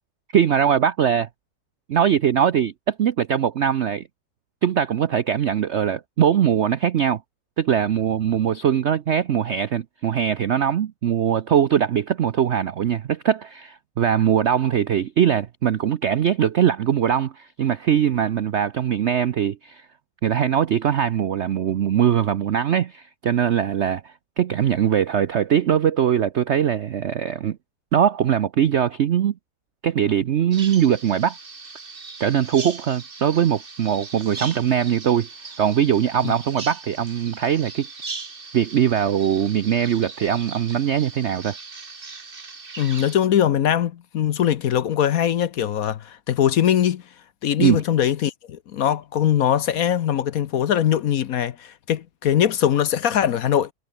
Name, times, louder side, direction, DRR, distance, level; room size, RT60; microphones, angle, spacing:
voice 1, 0.3-1.3 1.9-4.0 4.6-7.2 7.6-19.8 20.2-27.6 27.9-29.3 29.8-31.4 32.2-35.3 35.6-37.9 38.5-41.5 47.6-47.8, right 9 dB, 90° right, 0.6 m, -21 dB
Bird vocalization bird call bird song, 30.5-43.1, right 4 dB, 30° right, 1.8 m, -39 dB
voice 2, 42.8-47.0 47.4-53.7, left 10 dB, 60° left, 1.0 m, -21 dB
omnidirectional pair, 2.0 m